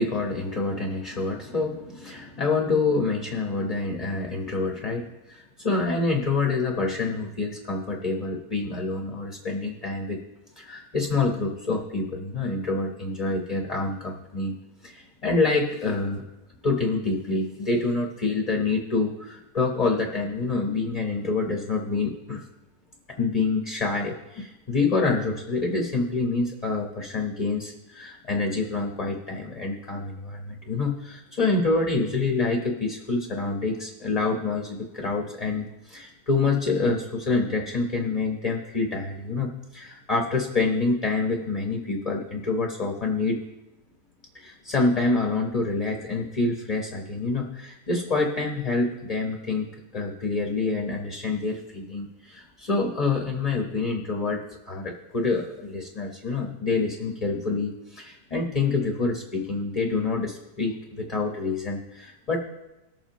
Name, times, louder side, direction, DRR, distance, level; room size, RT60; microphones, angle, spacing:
voice 1, 0.0-10.2 10.6-14.6 14.8-16.2 16.6-22.4 23.2-43.4 44.3-49.7 49.9-54.4 54.7-62.4, left 3 dB, 30° left, 1 dB, 0.9 m, -27 dB
19.5 x 7.2 x 3.0 m, 0.95 s
omnidirectional pair, 1.7 m